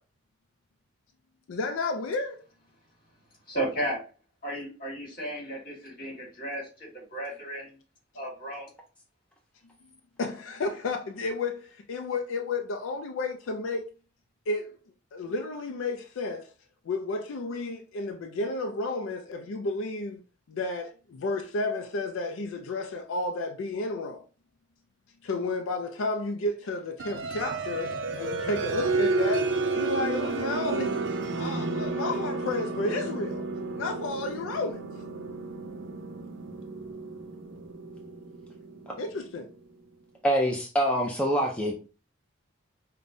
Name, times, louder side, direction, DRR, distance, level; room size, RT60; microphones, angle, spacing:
voice 1, 1.5-2.4 10.2-13.9 14.5-14.8 15.1-16.5 16.8-20.2 20.5-24.3 25.2-31.0 31.3-33.5 33.8-34.9 39.0-39.5, left 2 dB, 80° left, 0.4 m, -32 dB
voice 2, 3.5-4.0 4.4-7.7 8.2-8.7, right 1 dB, 45° left, 1.7 m, -34 dB
sound 1, 27.0-39.5, right 3 dB, 65° right, 0.5 m, -31 dB
voice 3, 40.2-41.7, equal, 5° left, 0.4 m, -25 dB
5.1 x 2.1 x 2.6 m
head